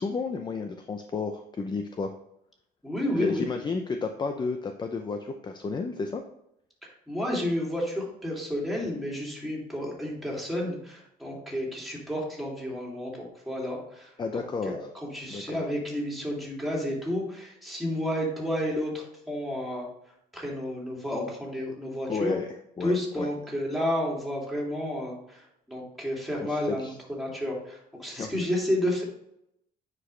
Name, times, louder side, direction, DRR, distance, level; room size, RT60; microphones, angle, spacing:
voice 1, 0.0-2.1 3.1-6.2 14.2-14.8 15.3-15.7 22.1-22.5 22.8-23.3 26.5-27.0 28.2-28.5, left 4 dB, 25° left, 6 dB, 0.6 m, -32 dB
voice 2, 2.8-3.5 7.1-19.9 20.3-22.3 22.8-29.0, left 1 dB, ahead, -4 dB, 2.7 m, -31 dB
9.4 x 5.0 x 3.3 m, 0.78 s
cardioid pair, 110°, 17 cm